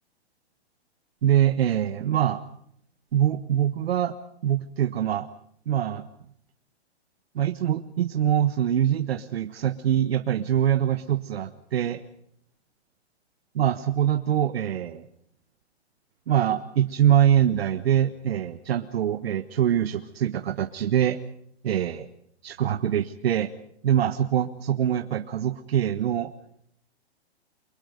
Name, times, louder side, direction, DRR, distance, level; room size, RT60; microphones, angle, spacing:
voice 1, 1.2-2.4 3.1-4.1 4.4-5.3 5.7-6.0 7.3-12.0 13.5-15.0 16.3-21.2 21.6-22.1 22.4-23.5 23.8-26.3, right 10 dB, 65° right, 8 dB, 1.4 m, -24 dB
30.0 x 24.0 x 5.2 m, 0.68 s
hypercardioid pair, 155°, 33 cm